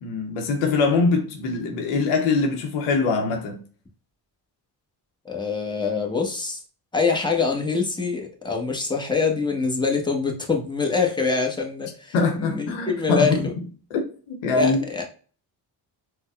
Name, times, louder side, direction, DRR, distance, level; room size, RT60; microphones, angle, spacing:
voice 1, 0.0-3.6 12.1-13.5 13.9-15.1, left 4 dB, 90° left, 0.8 m, -23 dB
voice 2, 5.2-6.6 6.9-13.5 14.5-15.0, left 4 dB, 10° left, 1.0 m, -25 dB
4.0 x 2.2 x 2.3 m
supercardioid pair, 45°, 49 cm